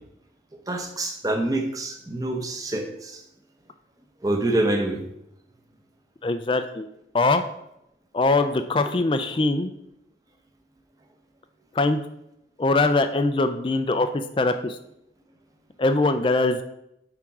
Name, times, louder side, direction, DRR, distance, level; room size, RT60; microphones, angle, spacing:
voice 1, 0.7-3.2 4.2-5.0, right 1 dB, 20° right, 4 dB, 0.9 m, -26 dB
voice 2, 6.2-6.9 7.1-7.4 8.1-9.7 11.7-12.0 12.6-14.8 15.8-16.6, left 2 dB, 30° left, 8 dB, 0.4 m, -22 dB
8.4 x 3.7 x 5.9 m, 0.81 s
head